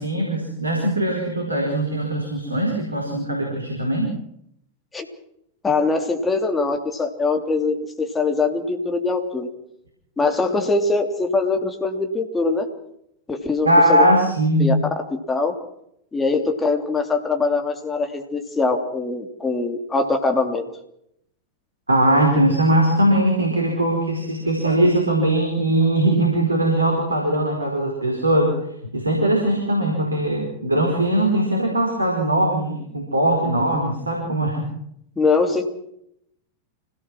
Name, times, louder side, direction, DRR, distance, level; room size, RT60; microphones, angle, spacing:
voice 1, 0.0-4.1 13.6-14.7 21.9-34.7, right 1 dB, 80° right, 0 dB, 4.8 m, -20 dB
voice 2, 5.6-9.5 10.2-12.7 13.3-14.0 14.6-14.7 15.3-15.5 16.1-20.6 35.2-35.6, left 3 dB, 15° left, 3 dB, 3.2 m, -22 dB
26.0 x 17.5 x 6.3 m, 0.76 s
figure-of-eight pair, 90°, 0 cm